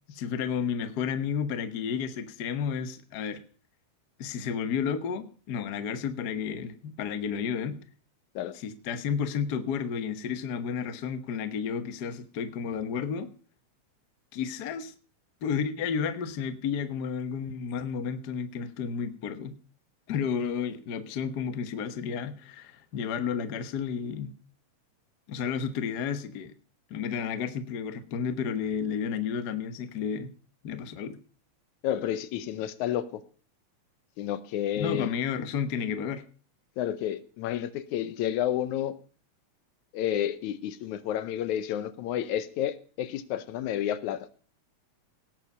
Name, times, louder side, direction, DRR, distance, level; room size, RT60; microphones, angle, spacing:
voice 1, 0.1-3.4 4.2-7.8 8.5-13.3 14.3-14.9 15.4-19.5 20.1-24.3 25.3-26.5 26.9-30.3 30.6-31.2 34.8-36.2, left 7 dB, 60° left, 1.0 m, -32 dB
voice 2, 31.8-33.2 34.2-35.1 36.8-39.0 39.9-44.3, left 11 dB, 85° left, 2.2 m, -30 dB
17.5 x 7.7 x 5.5 m
omnidirectional pair, 3.3 m